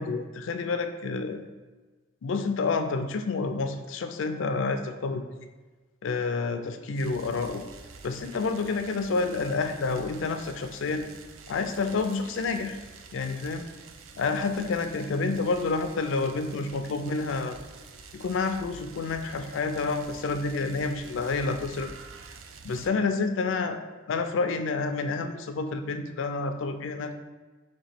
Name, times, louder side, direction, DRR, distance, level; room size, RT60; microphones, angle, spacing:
voice 1, 0.0-1.4 2.2-5.5 6.0-7.6 8.0-11.1 11.5-12.8 13.1-13.7 14.2-17.6 18.1-21.9 22.6-27.2, left 4 dB, 70° left, 7 dB, 0.4 m, -29 dB
sound 1, 6.9-22.9, right 4 dB, 90° right, 0.4 m, -48 dB
3.1 x 2.9 x 4.3 m, 1.3 s
head